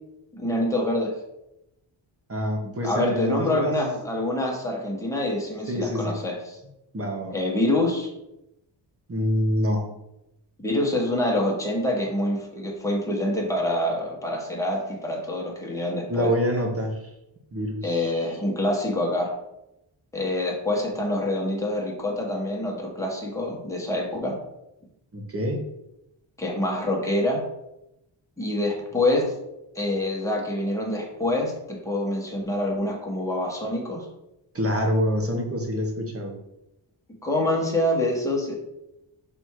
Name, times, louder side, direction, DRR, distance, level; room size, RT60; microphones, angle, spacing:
voice 1, 0.3-1.1 2.6-6.6 7.3-8.1 10.6-16.3 17.8-19.3 20.1-24.4 26.4-27.4 28.4-29.3 29.7-34.1 37.2-38.5, left 1 dB, 5° left, -2 dB, 1.2 m, -26 dB
voice 2, 2.3-3.7 5.7-6.2 6.9-7.4 9.1-9.9 16.1-17.0 17.5-18.2 25.1-25.6 34.5-36.4, equal, 30° right, 2 dB, 1.1 m, -26 dB
6.0 x 3.5 x 4.6 m, 0.87 s
wide cardioid pair, 165°, 47 cm